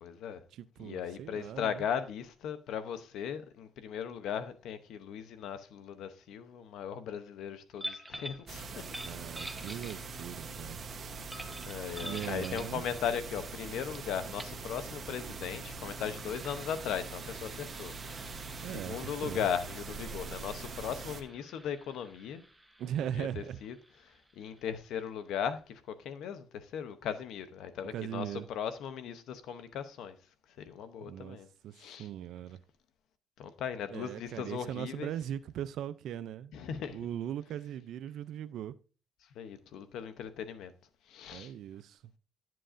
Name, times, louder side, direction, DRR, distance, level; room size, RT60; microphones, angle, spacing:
voice 1, 0.0-0.4 0.8-8.8 9.5-9.8 11.6-17.9 18.6-22.4 23.2-23.7 24.0-30.2 30.6-31.5 31.8-32.1 33.4-35.1 36.5-37.0 39.3-40.7 41.1-41.5, left 8 dB, 85° left, 0.7 m, -38 dB
voice 2, 0.5-1.8 9.0-10.8 12.0-12.8 18.6-19.5 22.8-23.6 27.9-28.5 31.0-31.4 31.6-32.6 33.9-36.5 36.9-38.8 41.3-42.0, right 10 dB, 80° right, 0.4 m, -39 dB
sound 1, 7.8-8.4 8.8-10.4 11.3-12.8 13.9-14.0 14.3-14.6 15.7-24.9, equal, 5° right, 1.1 m, -48 dB
sound 2, 8.5-21.2, right 4 dB, 45° right, 1.0 m, -43 dB
11.0 x 7.5 x 2.5 m
cardioid pair, 90°, 0 cm